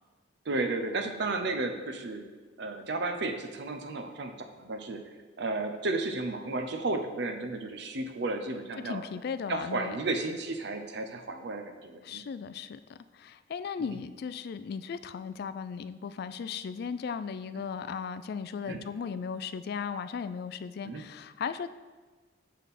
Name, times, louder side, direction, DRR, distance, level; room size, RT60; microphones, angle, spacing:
voice 1, 0.5-2.3 2.6-5.0 5.4-9.0 9.5-12.2 17.6-17.7 18.6-18.8 20.8-21.0, right 2 dB, 60° right, 6 dB, 0.7 m, -33 dB
voice 2, 8.8-10.0 12.0-21.7, left 6 dB, 55° left, 13 dB, 0.3 m, -37 dB
6.2 x 5.4 x 4.2 m, 1.4 s
head